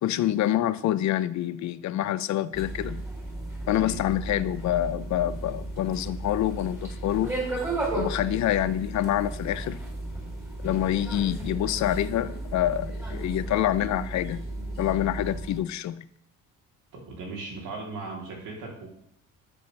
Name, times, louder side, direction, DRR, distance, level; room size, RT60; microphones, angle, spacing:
voice 1, 0.0-3.0 3.7-7.4 7.9-9.8 10.6-14.4 14.8-16.0, left 12 dB, 65° left, 0.5 m, -26 dB
sound 1, 2.5-15.6, right 2 dB, 10° right, 4.0 m, -34 dB
voice 2, 16.9-18.9, right 3 dB, 85° right, 3.2 m, -37 dB
13.5 x 7.0 x 3.2 m
cardioid pair, 115°, 31 cm